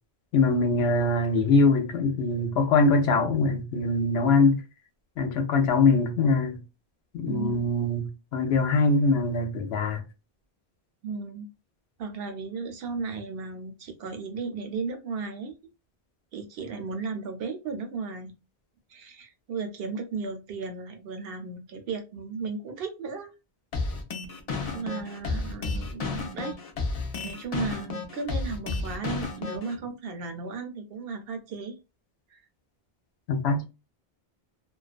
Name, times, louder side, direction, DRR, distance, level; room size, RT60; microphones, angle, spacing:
voice 1, 0.3-4.6 5.2-6.6 7.1-10.0 33.3-33.7, left 3 dB, 85° left, 0.9 m, -23 dB
voice 2, 7.2-7.6 11.0-11.5 12.0-15.6 16.3-18.4 18.9-23.3 24.7-26.6 27.2-31.8 32.3-32.4, right 4 dB, 75° right, 0.8 m, -35 dB
sound 1, 23.7-29.7, left 3 dB, 50° left, 0.5 m, -32 dB
2.3 x 2.3 x 2.4 m
omnidirectional pair, 1.0 m